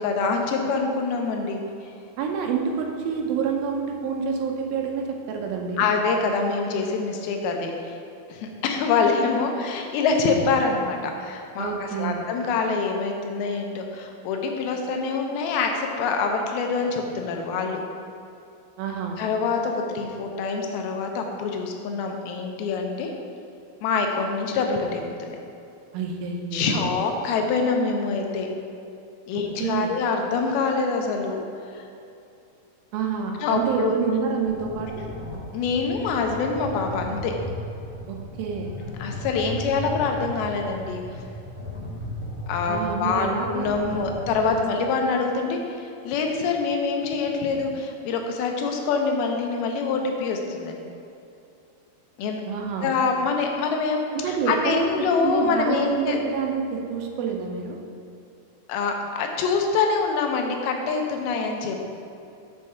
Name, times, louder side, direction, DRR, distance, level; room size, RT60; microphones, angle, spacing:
voice 1, 0.0-1.6 5.8-8.0 8.3-17.8 19.2-23.1 23.8-25.0 26.5-28.5 29.3-31.4 31.7-31.8 33.4-33.9 35.5-37.3 39.0-41.0 42.5-50.8 52.2-52.4 52.8-56.2 58.7-61.8, left 4 dB, 85° left, 3 dB, 2.7 m, -25 dB
voice 2, 2.2-5.9 11.6-12.2 18.8-19.2 25.9-26.9 29.3-29.9 32.9-35.1 38.1-38.7 42.7-44.0 44.5-44.6 52.5-52.9 54.1-57.8, right 6 dB, 80° right, 2 dB, 2.5 m, -28 dB
sound 1, 34.5-44.5, left 1 dB, 60° left, 2.3 m, -36 dB
6.4 x 5.3 x 5.6 m, 2.6 s
omnidirectional pair, 4.3 m